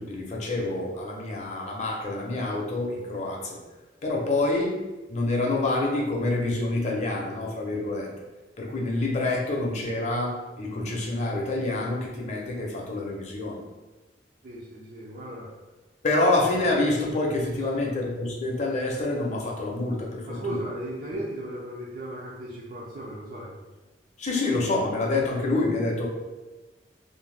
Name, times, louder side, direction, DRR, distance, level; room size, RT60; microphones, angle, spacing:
voice 1, 0.0-3.6 4.0-8.1 8.6-13.6 16.0-20.6 21.1-21.2 24.2-26.1, left 2 dB, 40° left, -1 dB, 0.5 m, -27 dB
voice 2, 14.4-15.5 17.6-17.7 20.3-23.6, right 1 dB, 50° right, -6 dB, 0.4 m, -36 dB
2.6 x 2.1 x 3.2 m, 1.2 s
head